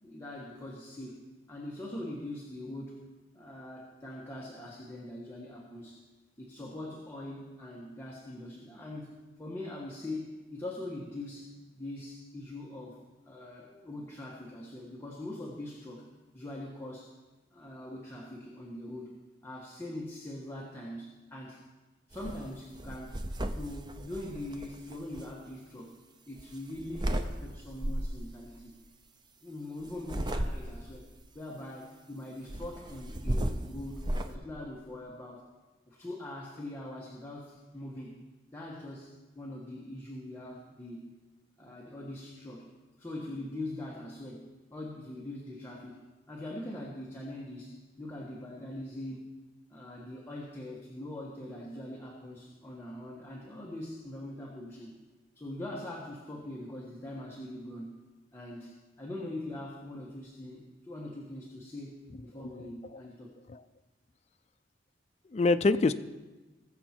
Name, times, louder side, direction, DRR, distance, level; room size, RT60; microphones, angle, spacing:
voice 1, 0.0-1.2 1.5-3.0 3.3-6.0 6.4-17.1 17.5-19.1 19.4-21.6 22.1-23.2 23.5-26.0 26.3-28.8 29.4-31.1 31.3-35.5 35.9-38.2 38.5-41.1 41.6-42.7 43.0-46.0 46.3-49.2 49.7-55.0 55.3-58.0 58.3-63.4, left 1 dB, 15° left, -4 dB, 1.4 m, -42 dB
sound 1, 22.1-22.4 22.8-25.3 26.4-27.3 27.8-28.2 29.9-30.9 32.5-34.3, right 1 dB, 25° right, 0.7 m, -34 dB
voice 2, 65.3-65.9, left 3 dB, 35° left, 9 dB, 0.4 m, -26 dB
20.5 x 7.1 x 4.5 m, 1.2 s
head